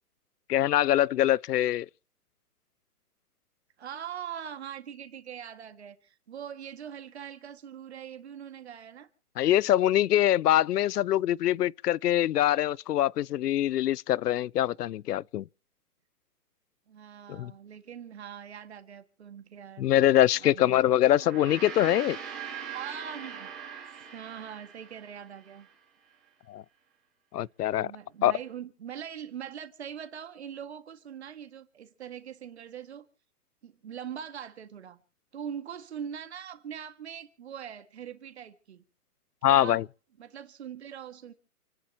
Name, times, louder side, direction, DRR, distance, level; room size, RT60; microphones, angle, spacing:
voice 1, 0.5-1.9 9.4-15.4 17.3-17.5 19.8-22.2 26.5-26.6 27.3-27.9 28.2-28.3 39.4-39.8, left 13 dB, 80° left, 0.6 m, -24 dB
voice 2, 3.8-9.1 16.9-19.9 20.3-21.0 22.7-23.6 24.1-25.7 27.8-33.0 33.6-35.0 35.3-38.8 39.5-39.8 40.2-41.3, right 8 dB, 45° right, 1.9 m, -42 dB
Gong, 21.1-25.7, right 7 dB, 15° right, 2.5 m, -41 dB
29.0 x 11.0 x 2.9 m
hypercardioid pair, 175°, 46 cm